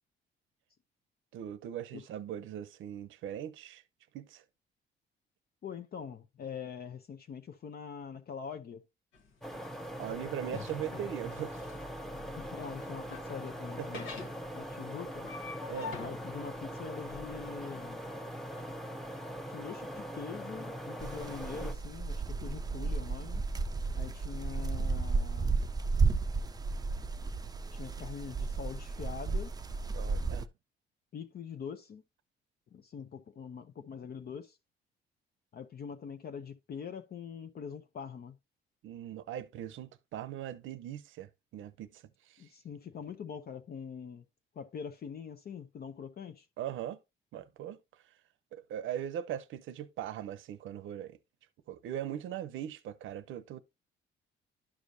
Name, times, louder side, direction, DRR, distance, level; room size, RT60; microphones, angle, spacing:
voice 1, 1.3-3.8 4.1-4.4 10.0-11.6 13.8-14.0 15.7-16.0 29.9-30.5 38.8-42.5 46.6-47.0 47.3-47.8 48.5-51.2 51.7-53.6, right 10 dB, 80° right, 0.7 m, -40 dB
voice 2, 5.6-8.8 12.3-14.2 14.5-15.2 16.0-18.0 19.5-23.4 23.9-25.6 27.7-29.5 31.1-32.0 32.7-34.6 35.5-38.4 42.4-44.2 44.6-46.5, left 7 dB, 50° left, 0.7 m, -43 dB
sound 1, 9.1-18.7, left 5 dB, 85° left, 1.3 m, -47 dB
sound 2, 9.4-21.7, equal, ahead, 0.8 m, -42 dB
sound 3, 21.0-30.5, right 4 dB, 20° right, 0.5 m, -33 dB
11.5 x 4.9 x 2.6 m
cardioid pair, 90°, 20 cm